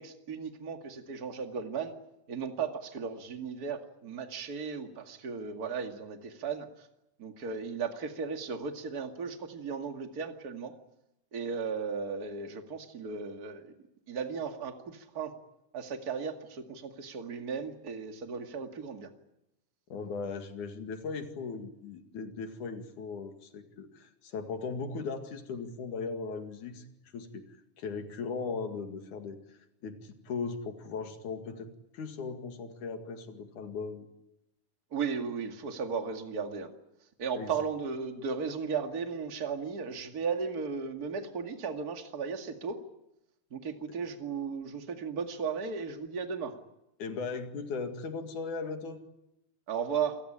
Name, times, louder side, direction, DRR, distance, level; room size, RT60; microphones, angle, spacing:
voice 1, 0.0-1.9 2.3-6.7 7.2-10.7 11.3-13.7 14.1-15.3 15.7-19.1 34.9-36.7 37.2-42.8 43.5-46.5 49.7-50.2, right 5 dB, 30° right, 5 dB, 2.4 m, -35 dB
voice 2, 19.9-26.9 27.1-27.4 27.8-29.4 29.8-34.1 37.3-37.5 47.0-49.0, left 4 dB, 80° left, 6 dB, 3.6 m, -38 dB
28.5 x 19.0 x 8.9 m, 0.89 s
omnidirectional pair, 3.5 m